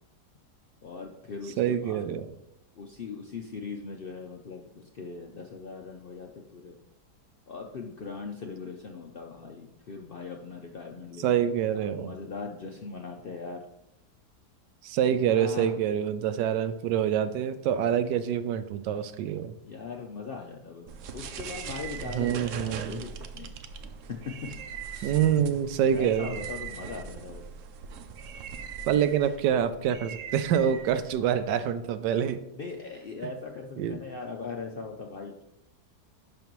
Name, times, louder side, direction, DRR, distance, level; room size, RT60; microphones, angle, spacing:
voice 1, 0.8-2.1 2.7-6.8 7.5-11.5 11.7-13.6 15.3-15.8 19.6-23.5 24.3-24.4 24.8-25.2 25.9-27.4 32.6-35.4, left 4 dB, 75° left, 2 dB, 0.5 m, -40 dB
voice 2, 1.6-2.3 11.2-12.1 14.8-19.5 22.1-23.0 25.0-26.3 28.9-32.4 33.8-34.0, right 9 dB, 85° right, 12 dB, 1.2 m, -26 dB
sound 1, 20.9-31.5, right 7 dB, 70° right, 0.7 m, -41 dB
11.0 x 5.3 x 3.1 m, 0.85 s
omnidirectional pair, 1.8 m